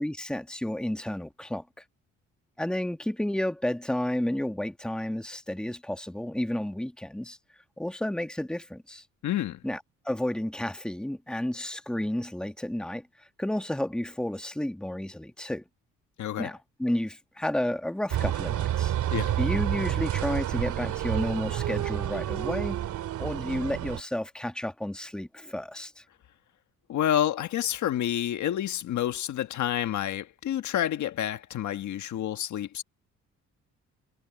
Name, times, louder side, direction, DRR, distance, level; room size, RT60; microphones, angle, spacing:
voice 1, 0.0-1.6 2.6-7.4 7.8-9.0 9.6-15.6 16.4-18.9 19.4-22.8 23.2-26.0, left 1 dB, 5° left, 1.5 m, -31 dB
voice 2, 9.2-9.6 16.2-16.5 19.1-19.4 26.9-32.8, left 11 dB, 70° left, 1.5 m, -29 dB
sound 1, 18.1-24.0, right 12 dB, 80° right, 2.3 m, -29 dB
cardioid pair, 90°, 30 cm